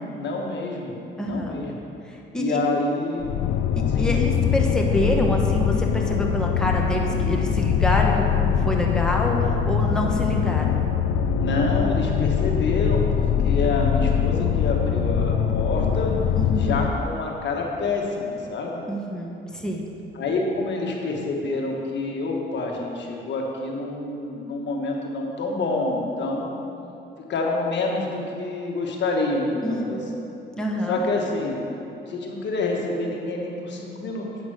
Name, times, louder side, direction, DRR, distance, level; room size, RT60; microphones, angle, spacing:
voice 1, 0.1-1.7 2.3-3.3 3.9-4.1 11.3-16.1 16.6-18.8 20.1-26.5 27.3-30.2 30.9-31.6 32.1-34.3, left 2 dB, 65° left, 0 dB, 1.5 m, -27 dB
voice 2, 1.2-1.6 2.0-2.6 3.7-10.8 16.4-16.8 18.9-19.8 29.6-30.1 30.6-31.0, left 1 dB, 5° left, -1 dB, 1.1 m, -27 dB
sound 1, 3.2-16.9, left 8 dB, 80° left, 0.5 m, -22 dB
8.5 x 6.1 x 6.4 m, 2.9 s
cardioid pair, 90°, 20 cm